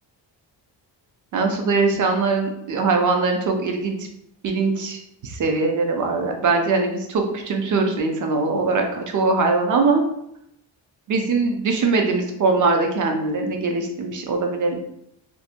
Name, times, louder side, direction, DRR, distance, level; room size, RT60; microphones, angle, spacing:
voice 1, 1.3-3.9 4.4-10.0 11.1-14.8, right 3 dB, 45° right, 3 dB, 0.5 m, -21 dB
2.6 x 2.1 x 2.5 m, 0.76 s
wide cardioid pair, 135°, 47 cm